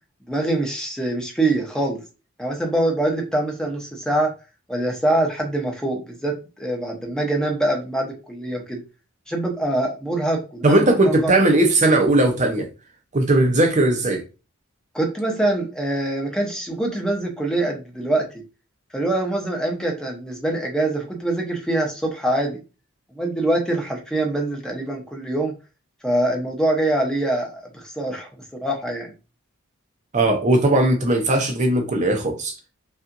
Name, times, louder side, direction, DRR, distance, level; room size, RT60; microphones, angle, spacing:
voice 1, 0.3-2.0 2.4-4.3 4.7-8.8 9.3-11.3 14.9-18.3 18.9-22.6 23.1-25.6 26.0-28.3 28.6-29.1, right 1 dB, 5° left, 0.8 m, -24 dB
voice 2, 10.6-12.7 13.1-14.2 30.1-32.6, right 1 dB, 35° right, 0.7 m, -18 dB
5.4 x 2.4 x 2.6 m
head